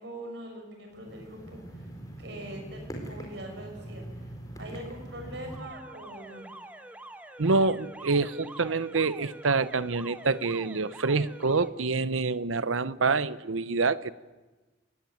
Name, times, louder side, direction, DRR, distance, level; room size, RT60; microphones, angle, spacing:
voice 1, 0.0-1.6 2.2-4.2 4.6-6.5, right 1 dB, 60° right, 3 dB, 6.6 m, -42 dB
sound 1, 0.9-5.6, right 1 dB, 20° left, 4.2 m, -42 dB
Alarm, 5.2-11.7, right 1 dB, 5° right, 1.2 m, -46 dB
voice 2, 7.4-14.1, right 4 dB, 90° right, 16 dB, 0.9 m, -26 dB
23.0 x 19.5 x 9.4 m, 1.2 s
head